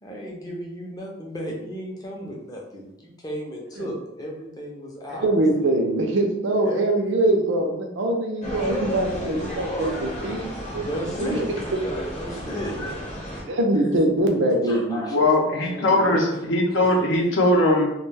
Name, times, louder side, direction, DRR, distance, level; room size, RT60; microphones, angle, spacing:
voice 1, 0.0-5.3 5.6-5.7 6.5-6.9 10.7-11.5 12.1-12.7 14.6-15.1 15.7-16.4 16.8-17.0, equal, 20° left, -2 dB, 0.5 m, -34 dB
voice 2, 5.1-10.9 11.2-11.4 12.8-12.9 13.5-15.0, right 1 dB, 70° right, 2 dB, 0.5 m, -23 dB
sound 1, 8.4-13.4, equal, 35° left, 0.8 m, -32 dB
voice 3, 15.1-17.9, left 1 dB, 70° left, 0 dB, 0.6 m, -20 dB
2.4 x 2.2 x 3.2 m, 0.86 s
head